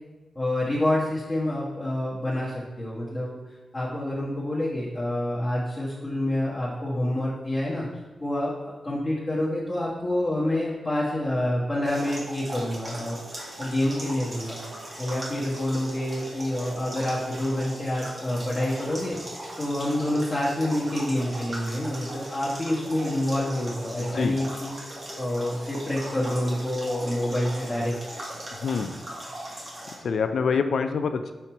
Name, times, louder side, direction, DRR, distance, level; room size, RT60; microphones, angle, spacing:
voice 1, 0.3-3.4 3.7-7.9 8.2-8.5 8.8-14.6 15.0-19.2 19.6-24.7 25.2-27.9, left 1 dB, 15° left, -9 dB, 1.5 m, -27 dB
sound 1, 11.8-29.9, right 1 dB, 40° right, 1.9 m, -39 dB
sound 2, 12.5-28.8, right 2 dB, 5° right, 1.4 m, -48 dB
voice 2, 24.0-24.4 28.6-29.0 30.0-31.3, left 5 dB, 75° left, 8 dB, 0.4 m, -26 dB
5.6 x 4.3 x 4.5 m, 1.2 s
cardioid pair, 75°, 0 cm